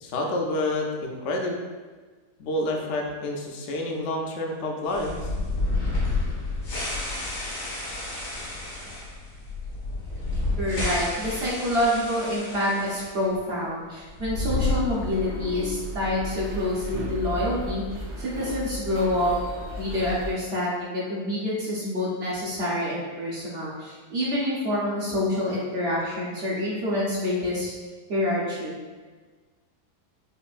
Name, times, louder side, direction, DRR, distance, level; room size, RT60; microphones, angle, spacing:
voice 1, 0.0-1.6 2.4-5.3, left 1 dB, 65° left, 1 dB, 0.7 m, -28 dB
sound 1, 4.9-13.1 13.3-13.4 14.1-15.4, left 2 dB, 85° left, 1.6 m, -30 dB
voice 2, 10.6-17.8 18.2-19.3 19.8-27.7 28.1-28.7, left 1 dB, 50° right, -6 dB, 0.8 m, -27 dB
sound 2, 14.6-20.3, right 1 dB, 75° right, 1.2 m, -35 dB
5.1 x 2.5 x 2.4 m, 1.4 s
omnidirectional pair, 1.7 m